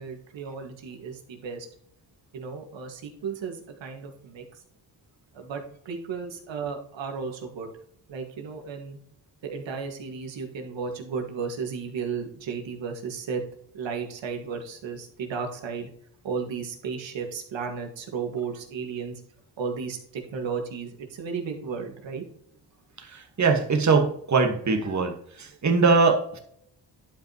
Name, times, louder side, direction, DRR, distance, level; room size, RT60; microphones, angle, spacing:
voice 1, 0.0-1.7 2.3-4.4 5.3-7.7 8.1-9.0 9.4-13.4 13.7-15.9 16.2-19.2 19.6-22.2, right 5 dB, 80° right, 3 dB, 2.0 m, -34 dB
voice 2, 23.1-26.4, right 4 dB, 40° right, 4 dB, 1.6 m, -22 dB
11.5 x 5.1 x 3.0 m, 0.67 s
cardioid pair, 95°, 44 cm